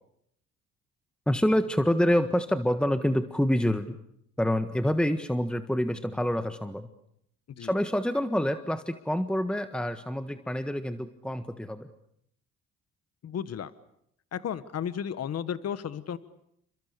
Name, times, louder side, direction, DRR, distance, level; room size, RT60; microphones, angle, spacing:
voice 1, 1.3-4.0 4.4-6.9 7.6-11.9, equal, 5° left, 9 dB, 1.6 m, -27 dB
voice 2, 13.2-13.7 14.3-16.2, left 8 dB, 55° left, 14 dB, 1.3 m, -33 dB
29.5 x 25.5 x 6.8 m, 0.73 s
cardioid pair, 90°, 30 cm